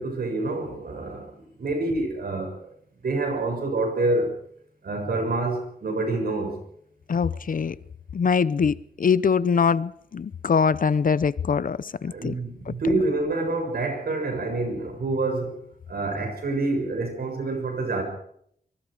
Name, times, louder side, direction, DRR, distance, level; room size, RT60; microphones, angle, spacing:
voice 1, 0.0-2.6 3.0-4.4 4.8-6.6 12.1-15.6 15.9-18.0, right 2 dB, 70° right, 7.0 m, -27 dB
voice 2, 7.1-7.7 8.1-12.3 12.7-12.8, left 6 dB, 60° left, 0.8 m, -23 dB
24.5 x 23.5 x 5.0 m
wide cardioid pair, 120°, 16 cm